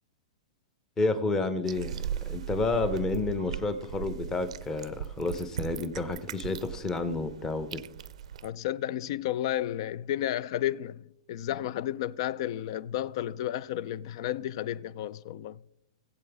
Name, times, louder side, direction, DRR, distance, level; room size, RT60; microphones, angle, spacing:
voice 1, 1.0-2.0 2.3-7.8, left 3 dB, 15° left, 0.9 m, -30 dB
sound 1, 1.7-8.5, right 9 dB, 75° right, 0.5 m, -38 dB
voice 2, 8.4-15.6, left 12 dB, 50° left, 0.4 m, -32 dB
19.0 x 7.9 x 3.5 m
hypercardioid pair, 160°, 4 cm